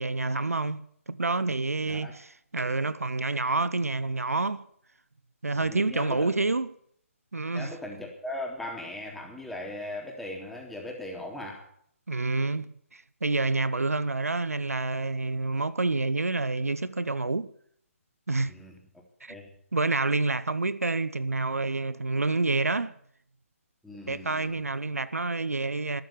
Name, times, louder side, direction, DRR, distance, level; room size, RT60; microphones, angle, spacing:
voice 1, 0.0-4.6 5.4-6.7 7.3-7.8 12.1-17.5 18.3-18.6 19.2-19.3 19.7-23.0 24.1-26.0, right 3 dB, 85° right, 0.8 m, -28 dB
voice 2, 1.8-2.1 5.6-6.4 7.5-11.7 18.4-18.8 19.3-19.5 23.8-24.6, left 1 dB, ahead, 3.5 m, -39 dB
13.0 x 11.5 x 8.9 m
figure-of-eight pair, 140°, 8 cm